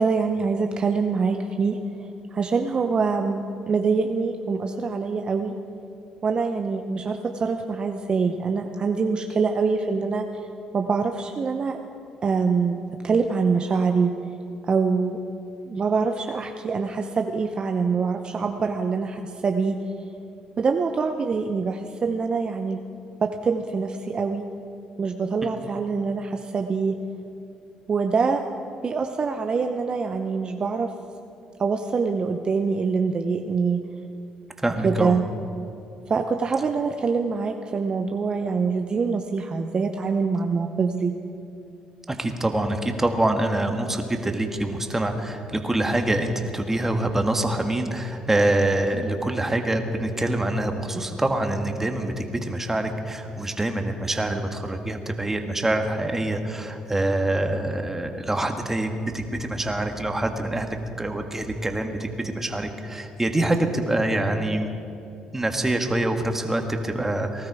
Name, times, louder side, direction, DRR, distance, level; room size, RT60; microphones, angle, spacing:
voice 1, 0.0-5.6 6.2-10.2 10.7-11.8 12.2-14.2 14.6-15.2 15.7-19.8 20.6-22.8 23.2-24.4 25.0-27.0 27.9-28.4 28.8-30.9 31.6-33.8 34.8-35.2 36.1-41.2, right 5 dB, 40° right, 5 dB, 0.8 m, -24 dB
voice 2, 34.6-35.2 42.1-64.7 65.3-67.5, right 1 dB, 15° right, 5 dB, 1.6 m, -25 dB
19.0 x 13.0 x 4.8 m, 2.6 s
supercardioid pair, 70°, 2 cm